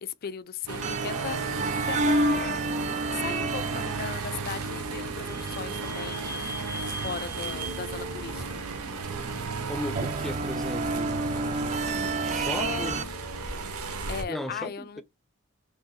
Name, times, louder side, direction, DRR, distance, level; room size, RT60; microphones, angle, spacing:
voice 1, 0.0-2.7 3.1-6.4 7.0-8.5 12.6-13.2 14.1-15.0, left 7 dB, 45° left, 0.4 m, -37 dB
sound 1, 0.7-14.2, right 4 dB, 85° right, 0.9 m, -35 dB
sound 2, 0.8-13.0, right 2 dB, 30° right, 0.4 m, -31 dB
Vehicle / Squeak, 4.2-9.4, right 1 dB, 50° right, 1.0 m, -42 dB
voice 2, 9.7-11.2 12.2-13.0 14.3-15.0, equal, ahead, 0.7 m, -35 dB
4.3 x 3.1 x 3.1 m
head